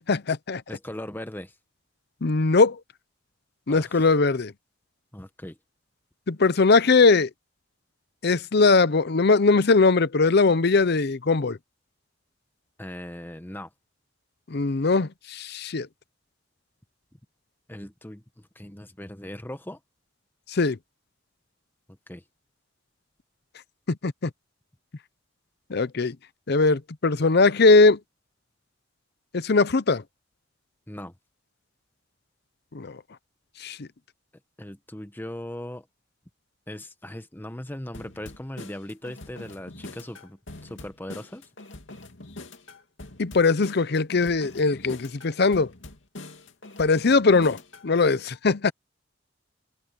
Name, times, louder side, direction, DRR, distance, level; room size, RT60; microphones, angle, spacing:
voice 1, 0.0-0.6 2.2-2.8 3.7-4.5 6.3-7.3 8.2-11.6 14.5-15.9 20.5-20.8 23.9-24.3 25.7-26.2 26.5-28.0 29.3-30.0 32.7-33.0 33.6-33.9 43.2-45.7 46.8-48.7, left 3 dB, 60° left, 0.7 m, -20 dB
voice 2, 0.7-1.5 3.7-4.2 5.1-5.6 12.8-13.7 17.7-19.8 22.1-22.2 30.9-31.1 34.6-35.9 36.7-41.5, left 1 dB, 10° left, 1.1 m, -39 dB
sound 1, 37.9-47.9, left 2 dB, 80° left, 2.6 m, -44 dB
head